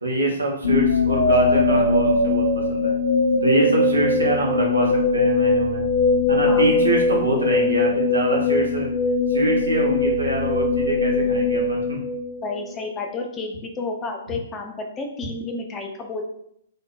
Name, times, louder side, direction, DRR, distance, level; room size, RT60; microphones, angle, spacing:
voice 1, 0.0-3.0 3.4-5.8 6.3-8.9 9.3-12.0, right 1 dB, 75° right, -1 dB, 0.6 m, -24 dB
sound 1, 0.6-12.7, left 3 dB, 70° left, 0.6 m, -21 dB
voice 2, 12.4-16.2, left 3 dB, 20° left, 3 dB, 0.3 m, -31 dB
2.6 x 2.0 x 2.3 m, 0.73 s
figure-of-eight pair, 115°, 0 cm